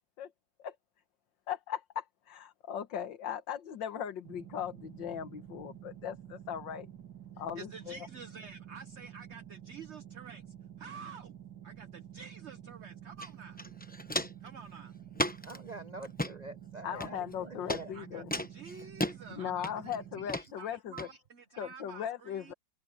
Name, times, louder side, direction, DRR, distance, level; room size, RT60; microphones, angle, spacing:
voice 1, 1.5-6.9 7.4-8.0 16.8-18.3 19.3-21.1 21.6-22.5, left 9 dB, 70° left, 1.9 m, -38 dB
sound 1, 4.2-20.3, right 10 dB, 75° right, 3.4 m, -50 dB
voice 2, 7.6-10.4 10.8-11.4 11.6-13.6 14.4-14.9 17.9-18.2 18.5-22.5, right 5 dB, 40° right, 1.2 m, -49 dB
Walk footsteps, 13.2-13.3 13.6-14.5 15.1-15.6 16.0-16.3 17.0-17.4 17.7-17.8 18.3-19.1 19.6-20.0 20.3-20.5 21.0-21.1, left 1 dB, 10° left, 0.4 m, -34 dB
voice 3, 15.4-17.9, right 3 dB, 60° right, 0.4 m, -46 dB
omnidirectional pair, 2.1 m